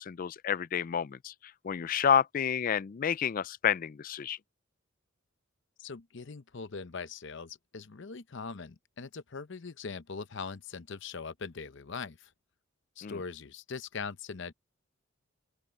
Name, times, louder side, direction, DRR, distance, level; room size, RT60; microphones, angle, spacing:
voice 1, 0.0-1.3 1.6-4.4 13.0-13.2, left 8 dB, 40° left, 0.3 m, -29 dB
voice 2, 5.8-12.3 13.0-14.5, left 5 dB, 60° left, 0.8 m, -41 dB
open air
head